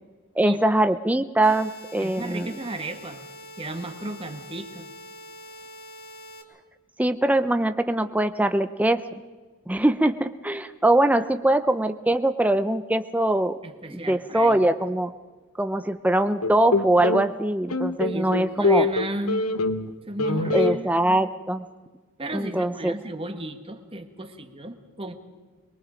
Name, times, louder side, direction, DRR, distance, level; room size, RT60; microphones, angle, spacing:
voice 1, 0.4-2.5 7.0-9.0 9.7-13.6 13.9-15.1 15.6-18.9 20.5-21.6 22.3-22.9, right 1 dB, 5° right, 10 dB, 0.5 m, -22 dB
sound 1, 1.4-6.4, left 1 dB, 45° left, 2.1 m, -44 dB
voice 2, 2.0-3.2 3.6-4.9 13.6-14.6 18.0-19.4 20.1-20.9 22.2-25.1, right 1 dB, 25° right, 7 dB, 1.5 m, -34 dB
sound 2, 16.4-17.3 17.7-19.9 20.2-20.8, left 3 dB, 90° left, 1.0 m, -24 dB
23.0 x 22.5 x 5.1 m, 1.4 s
head